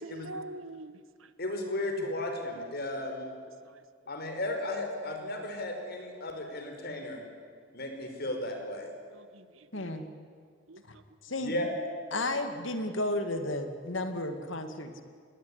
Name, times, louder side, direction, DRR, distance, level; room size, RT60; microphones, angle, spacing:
voice 1, 0.0-1.3 3.6-3.8 9.1-9.9 10.7-11.0, right 2 dB, 85° right, 13 dB, 1.5 m, -45 dB
voice 2, 1.4-3.3 4.1-7.2 7.7-8.9 11.4-11.7, left 1 dB, 50° left, 4 dB, 5.1 m, -35 dB
voice 3, 9.7-10.1 10.9-11.0 11.2-11.7 12.1-15.0, left 1 dB, 65° left, 7 dB, 2.3 m, -33 dB
27.5 x 21.0 x 9.9 m, 2.1 s
head